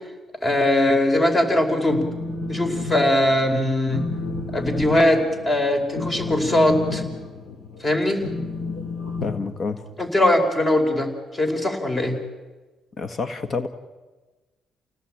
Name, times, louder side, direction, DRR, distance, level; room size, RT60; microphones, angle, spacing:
voice 1, 0.4-2.1 2.5-4.1 4.5-7.0 7.8-8.2 10.0-12.2, left 1 dB, 30° left, 5 dB, 5.0 m, -20 dB
Telephone, 1.7-2.9 3.3-3.5 3.9-10.0, left 3 dB, 80° left, 4.2 m, -30 dB
voice 2, 9.2-9.8 13.0-13.7, left 4 dB, 50° left, 9 dB, 1.7 m, -28 dB
29.0 x 18.5 x 9.0 m, 1.2 s
cardioid pair, 90°, 0 cm